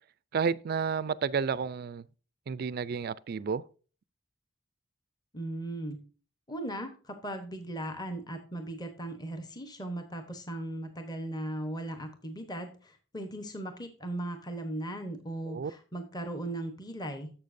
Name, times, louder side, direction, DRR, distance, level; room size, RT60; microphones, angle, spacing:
voice 1, 0.3-2.0 2.5-3.6 15.5-15.7, right 6 dB, 50° right, 0.3 m, -31 dB
voice 2, 5.3-6.0 6.5-17.3, right 1 dB, 20° left, 0.9 m, -38 dB
11.5 x 7.2 x 2.6 m
head